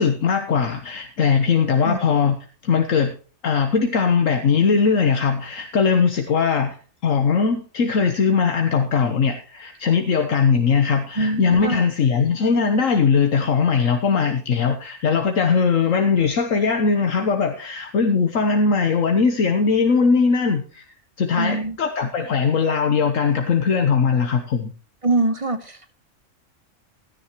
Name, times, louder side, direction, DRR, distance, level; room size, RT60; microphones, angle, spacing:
voice 1, 0.0-2.4 2.6-3.1 3.4-6.8 7.0-20.8 21.2-24.7, left 5 dB, 70° left, 6 dB, 1.4 m, -20 dB
voice 2, 11.2-11.8 21.4-21.8 25.0-25.9, right 2 dB, 30° right, 10 dB, 0.9 m, -23 dB
15.5 x 10.5 x 3.0 m, 0.37 s
omnidirectional pair, 1.4 m